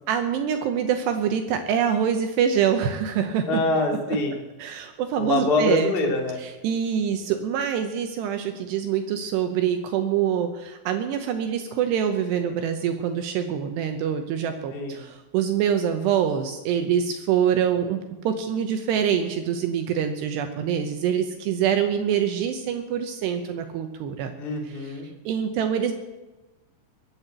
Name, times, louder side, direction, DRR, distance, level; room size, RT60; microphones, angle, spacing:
voice 1, 0.1-3.5 4.1-4.2 4.6-5.9 6.4-24.3 24.7-24.9 25.3-25.9, right 8 dB, 75° right, 7 dB, 2.6 m, -25 dB
voice 2, 3.5-4.4 5.2-6.4 14.7-15.0 24.4-25.1, left 2 dB, 65° left, 0 dB, 0.5 m, -24 dB
22.0 x 7.5 x 8.0 m, 1.1 s
omnidirectional pair, 5.7 m